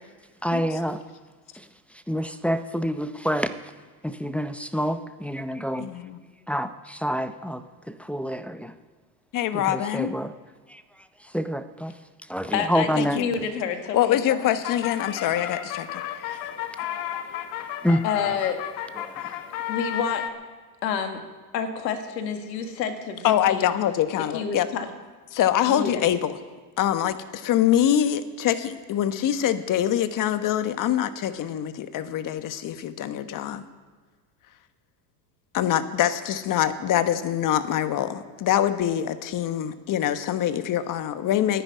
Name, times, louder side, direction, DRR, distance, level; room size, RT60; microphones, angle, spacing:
voice 1, 0.4-1.0 1.5-1.7 2.1-3.7 4.0-5.9 6.5-8.7 9.5-10.3 10.7-10.8 11.2-11.9 12.3-13.2 17.8-18.3 19.0-19.2, equal, 5° left, 9 dB, 0.6 m, -28 dB
voice 2, 5.8-6.2 9.3-10.1 13.0-13.1 13.9-16.4 23.2-24.7 25.3-26.3 26.8-33.6 35.5-41.6, left 11 dB, 40° left, 11 dB, 1.2 m, -24 dB
voice 3, 12.5-12.9 13.1-14.5 18.0-18.6 19.7-20.2 20.8-21.2 21.5-23.7 24.3-24.9 25.7-26.0, left 7 dB, 85° left, 7 dB, 1.9 m, -28 dB
sound 1, 14.1-20.3, left 11 dB, 65° left, 1.3 m, -33 dB
11.5 x 10.5 x 9.5 m, 1.5 s
hypercardioid pair, 95°, 49 cm